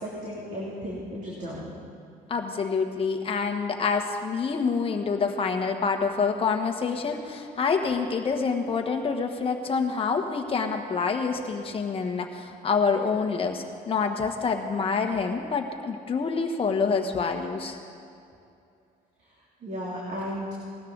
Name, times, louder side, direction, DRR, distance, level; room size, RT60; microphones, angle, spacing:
voice 1, 0.0-1.7 19.6-20.5, equal, 45° right, -5 dB, 3.0 m, -34 dB
voice 2, 2.3-17.8, left 5 dB, 35° left, 4 dB, 1.4 m, -27 dB
19.0 x 13.0 x 4.0 m, 2.5 s
cardioid pair, 110°, 17 cm